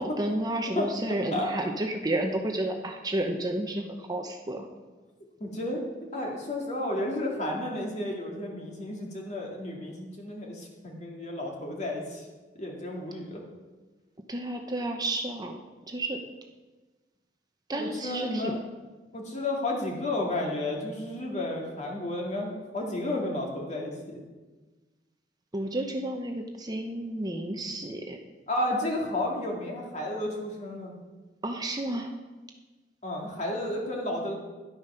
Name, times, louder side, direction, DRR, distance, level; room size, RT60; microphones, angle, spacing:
voice 1, 0.0-4.7 14.3-15.6 15.9-16.2 17.7-18.6 25.5-28.2 31.4-32.1, right 1 dB, 20° right, 4 dB, 0.7 m, -31 dB
voice 2, 1.3-1.7 5.4-5.8 6.1-12.3 12.6-13.4 17.7-18.6 19.1-24.2 28.5-30.9 33.0-34.4, left 1 dB, 40° left, -1 dB, 2.3 m, -32 dB
11.5 x 8.5 x 5.6 m, 1.3 s
head